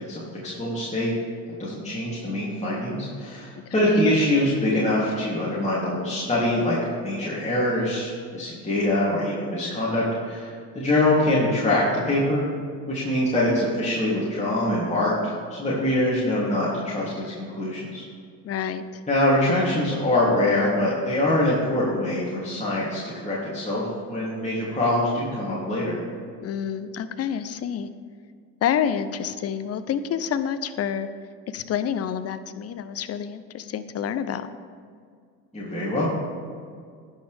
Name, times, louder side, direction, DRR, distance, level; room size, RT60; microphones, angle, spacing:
voice 1, 0.1-1.1 1.6-12.5 12.8-18.0 19.1-26.0 35.5-36.1, left 1 dB, 15° left, -8 dB, 3.1 m, -24 dB
voice 2, 3.7-4.1 18.4-19.0 26.4-27.9 28.6-31.1 31.5-34.5, left 8 dB, 30° left, 12 dB, 0.7 m, -28 dB
19.0 x 6.5 x 3.6 m, 2.1 s
hypercardioid pair, 65°, 49 cm